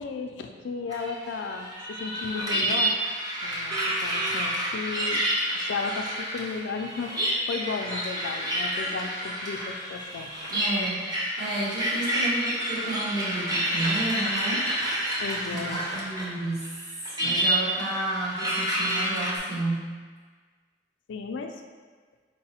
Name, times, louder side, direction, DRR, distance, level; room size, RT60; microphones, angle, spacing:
voice 1, 0.0-2.9 3.4-5.2 5.5-7.2 7.5-10.3 15.2-15.8 21.1-21.5, left 4 dB, 70° left, 5 dB, 0.3 m, -34 dB
sound 1, 0.9-16.4 16.6-19.3, right 1 dB, 20° right, 0.6 m, -29 dB
voice 2, 10.5-11.1 11.4-14.7 14.9-15.1 15.5-16.6 17.2-19.8, right 2 dB, 55° right, -8 dB, 1.3 m, -31 dB
4.7 x 2.0 x 4.2 m, 1.5 s
head